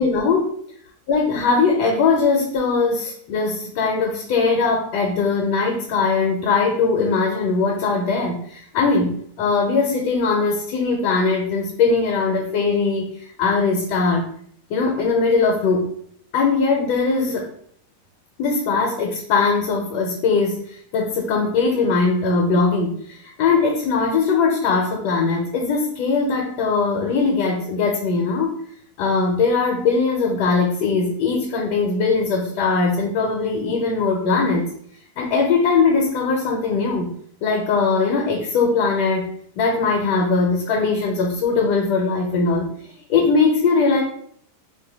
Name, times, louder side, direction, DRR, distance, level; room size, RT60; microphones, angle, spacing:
voice 1, 0.0-0.5 1.1-13.1 13.4-14.3 14.7-15.9 16.3-17.5 18.4-28.6 29.0-34.7 35.2-37.1 37.4-39.3 39.6-42.7 43.1-44.0, left 4 dB, 80° left, 2 dB, 1.2 m, -20 dB
2.8 x 2.1 x 3.9 m, 0.63 s
omnidirectional pair, 1.8 m